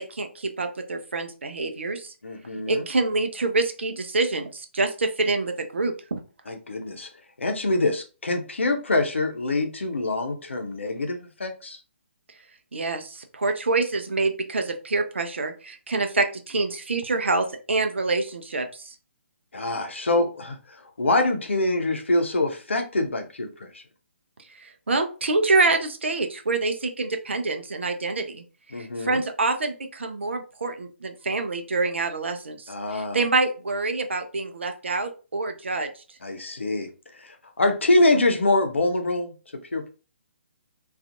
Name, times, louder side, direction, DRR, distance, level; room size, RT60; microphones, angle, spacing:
voice 1, 0.0-2.1 2.7-6.2 12.7-18.9 24.6-28.4 28.8-32.6 32.9-35.9, right 3 dB, 65° right, 6 dB, 0.5 m, -26 dB
voice 2, 2.2-2.8 6.5-7.1 7.4-11.8 19.5-20.6 21.0-23.8 28.7-29.2 32.7-33.2 36.2-39.3 39.7-39.9, left 2 dB, 70° left, 5 dB, 0.6 m, -25 dB
2.4 x 2.4 x 2.6 m, 0.34 s
figure-of-eight pair, 135°, 7 cm